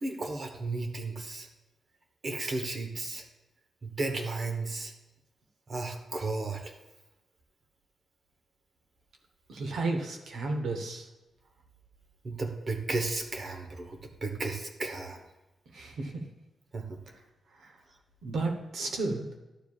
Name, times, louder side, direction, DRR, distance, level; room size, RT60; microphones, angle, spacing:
voice 1, 0.0-1.5 2.2-3.2 3.8-4.9 5.7-6.7 12.2-15.2 16.7-17.0, right 3 dB, 35° right, 5 dB, 1.0 m, -34 dB
voice 2, 9.5-11.1 15.7-16.2 17.6-17.7 18.2-19.3, right 3 dB, 70° right, 3 dB, 1.0 m, -33 dB
11.5 x 7.2 x 2.4 m, 1.0 s
wide cardioid pair, 165°, 0 cm